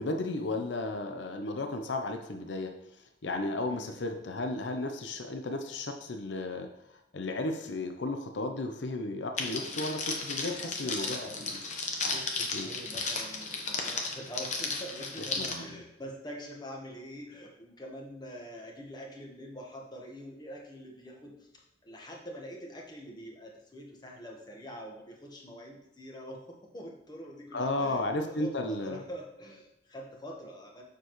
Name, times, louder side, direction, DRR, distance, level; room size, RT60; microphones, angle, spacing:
voice 1, 0.0-2.7 3.2-6.7 7.1-12.2 12.5-12.7 15.4-15.8 27.5-29.0, left 2 dB, 90° left, 5 dB, 0.7 m, -34 dB
voice 2, 3.7-4.0 9.6-9.8 10.4-11.5 12.1-30.8, equal, 25° left, -1 dB, 1.3 m, -45 dB
Crackle, 9.4-15.5, left 4 dB, 45° left, 1.0 m, -34 dB
6.9 x 6.8 x 3.1 m, 0.83 s
head